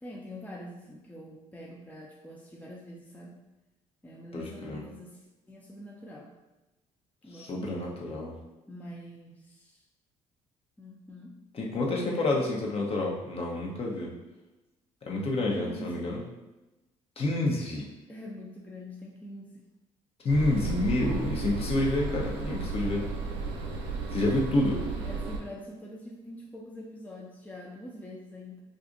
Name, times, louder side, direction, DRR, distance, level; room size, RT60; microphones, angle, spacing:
voice 1, 0.0-3.4 4.0-6.3 7.2-7.9 8.7-9.8 10.8-11.3 12.2-12.5 15.6-16.0 18.1-19.6 25.0-28.6, left 1 dB, 10° left, -2 dB, 0.6 m, -44 dB
voice 2, 4.3-4.8 7.3-8.3 11.5-14.1 15.0-16.2 17.2-17.9 20.2-23.1 24.1-24.8, left 2 dB, 40° left, -2 dB, 0.8 m, -28 dB
sound 1, 20.3-25.4, right 3 dB, 80° right, 0.6 m, -33 dB
2.5 x 2.4 x 3.8 m, 1.0 s
hypercardioid pair, 60°, 15 cm